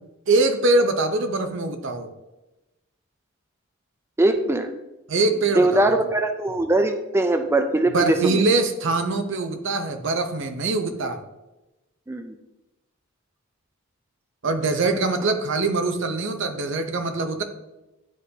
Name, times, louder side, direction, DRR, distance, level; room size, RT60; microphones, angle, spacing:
voice 1, 0.3-2.1 5.1-5.8 7.9-11.2 14.4-17.4, right 3 dB, 60° right, 6 dB, 0.7 m, -23 dB
voice 2, 4.2-4.7 5.5-8.4 12.1-12.3, right 2 dB, 10° right, 7 dB, 0.3 m, -21 dB
10.0 x 3.8 x 2.8 m, 1.0 s
head